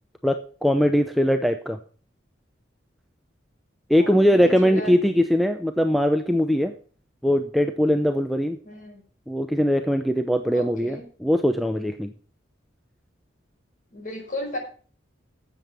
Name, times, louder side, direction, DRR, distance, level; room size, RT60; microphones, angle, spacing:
voice 1, 0.2-1.8 3.9-6.7 7.2-8.6 9.3-12.1, equal, ahead, 6 dB, 0.6 m, -21 dB
voice 2, 4.0-4.9 8.6-9.0 10.5-11.1 13.9-14.6, left 1 dB, 45° left, 1 dB, 5.7 m, -35 dB
12.0 x 7.9 x 5.9 m, 0.40 s
head